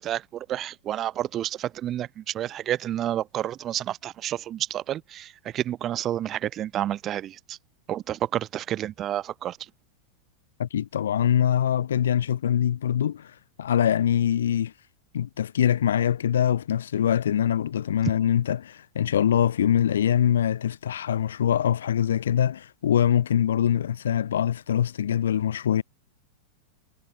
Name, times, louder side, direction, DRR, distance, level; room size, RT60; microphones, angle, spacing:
voice 1, 0.0-7.6 7.9-9.6, right 12 dB, 30° right, 7.5 m, -30 dB
voice 2, 10.6-13.3 13.6-14.7 15.1-25.8, left 9 dB, 65° left, 7.0 m, -23 dB
figure-of-eight pair, 90°, 0 cm